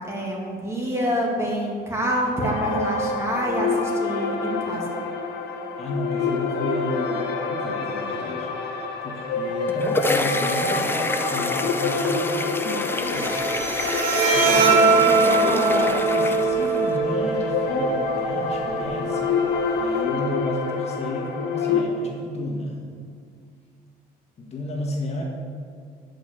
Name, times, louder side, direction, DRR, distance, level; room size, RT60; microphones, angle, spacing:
voice 1, 0.0-5.0 14.4-15.9, right 1 dB, 15° right, -2 dB, 2.1 m, -27 dB
sound 1, 2.4-21.8, left 4 dB, 80° left, 1.2 m, -27 dB
voice 2, 5.8-8.5 9.0-13.4 14.3-22.8 24.4-25.2, left 1 dB, 40° left, -1 dB, 1.6 m, -32 dB
sound 2, 9.5-17.0, left 2 dB, 15° left, 0.5 m, -29 dB
Bowed string instrument, 13.0-20.0, right 4 dB, 85° right, 2.0 m, -22 dB
9.8 x 5.3 x 6.7 m, 2.1 s
cardioid pair, 110°, 17 cm